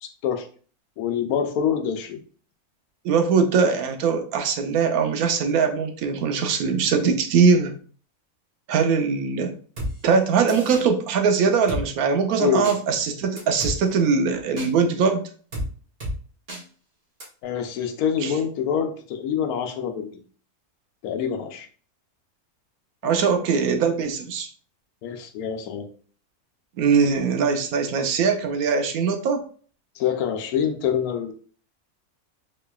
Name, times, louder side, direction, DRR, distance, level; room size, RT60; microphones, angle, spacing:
voice 1, 0.0-0.5 1.0-2.2 12.4-12.7 17.4-20.1 21.0-21.7 25.0-25.9 30.0-31.3, left 8 dB, 80° left, 6 dB, 1.1 m, -25 dB
voice 2, 3.0-7.7 8.7-9.6 10.0-15.2 18.2-18.3 23.0-24.5 26.8-29.4, right 5 dB, 80° right, 5 dB, 1.0 m, -21 dB
Drum kit, 9.8-9.9 10.5-10.8 11.7-11.8 12.6-12.8 13.4-13.8 14.6-14.7 15.5-15.7 16.0-16.2 16.5-16.6 17.2-17.3, equal, 35° right, 1.1 m, -30 dB
3.9 x 3.2 x 2.2 m, 0.44 s
omnidirectional pair, 1.6 m